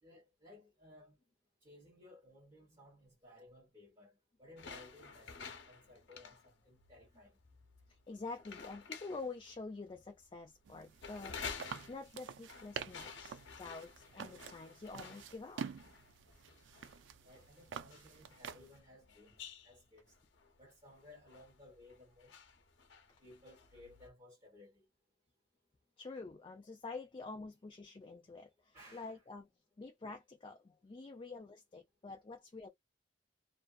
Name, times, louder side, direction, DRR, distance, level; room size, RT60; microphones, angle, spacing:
voice 1, 0.0-1.1 1.6-4.1 4.4-6.4 6.7-7.3 17.2-19.3 19.6-20.0 20.6-22.3 23.2-24.7 28.7-29.2, left 1 dB, 30° right, 1.3 m, -59 dB
sound 1, 4.6-24.1, left 6 dB, 90° left, 0.6 m, -52 dB
voice 2, 7.9-15.7 26.0-29.5 29.8-32.7, left 3 dB, 30° left, 0.4 m, -48 dB
sound 2, 10.7-18.8, right 7 dB, 90° right, 0.4 m, -48 dB
2.5 x 2.2 x 2.3 m
head